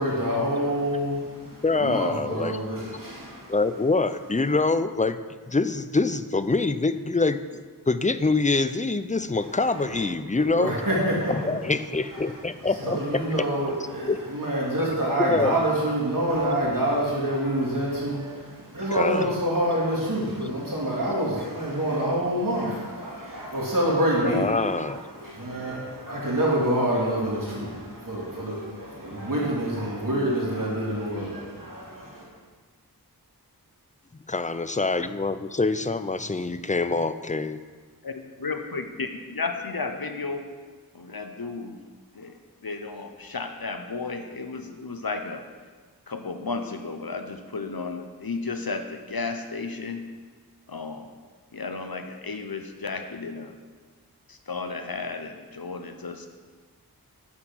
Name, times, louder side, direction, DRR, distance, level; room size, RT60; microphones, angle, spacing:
voice 1, 0.0-3.5 9.8-10.0 10.4-11.7 12.6-24.7 25.2-32.0, right 1 dB, 60° right, -5 dB, 2.6 m, -27 dB
voice 2, 1.6-2.6 3.5-5.2 5.5-10.7 11.3-13.4 14.1-14.2 15.2-15.6 18.9-19.3 24.2-25.0 34.3-37.6, left 3 dB, 20° left, 12 dB, 0.5 m, -25 dB
voice 3, 38.0-40.5 40.9-41.9 42.1-45.4 46.1-50.1 50.7-51.1 51.5-53.5 54.3-56.3, left 4 dB, 70° left, 6 dB, 1.0 m, -33 dB
9.7 x 8.0 x 6.2 m, 1.5 s
wide cardioid pair, 45°, 37 cm